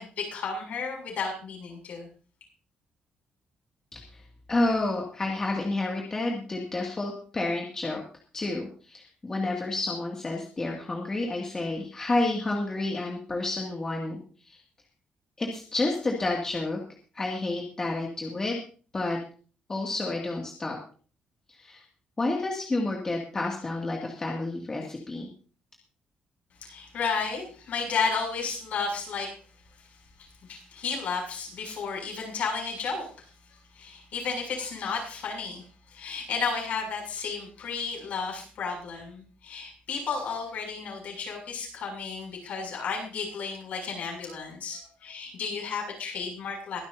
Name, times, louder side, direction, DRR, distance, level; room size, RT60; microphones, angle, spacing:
voice 1, 0.0-2.1 26.6-29.3 30.5-33.1 33.7-35.6 35.9-46.8, left 5 dB, 60° left, 1 dB, 7.2 m, -33 dB
voice 2, 4.5-8.0 8.3-14.6 15.4-16.8 17.1-18.6 18.9-19.2 19.7-20.8 21.5-21.8 22.2-25.3, left 2 dB, 20° left, -1 dB, 2.3 m, -30 dB
22.5 x 11.5 x 2.8 m, 0.39 s
cardioid pair, 175°, 3 cm